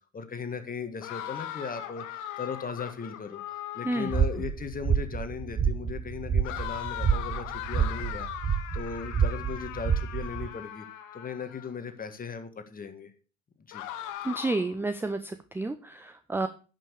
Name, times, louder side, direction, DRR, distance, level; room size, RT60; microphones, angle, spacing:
voice 1, 0.1-10.9 11.1-13.1 13.7-13.8, left 6 dB, 20° left, 8 dB, 1.8 m, -38 dB
sound 1, 1.0-4.4 6.4-11.7 13.7-14.7, left 11 dB, 50° left, 1.6 m, -39 dB
sound 2, 4.1-10.5, right 7 dB, 20° right, 1.1 m, -28 dB
voice 2, 14.2-16.5, right 2 dB, 5° right, 11 dB, 0.7 m, -30 dB
11.0 x 6.1 x 6.7 m, 0.37 s
figure-of-eight pair, 75°, 40 cm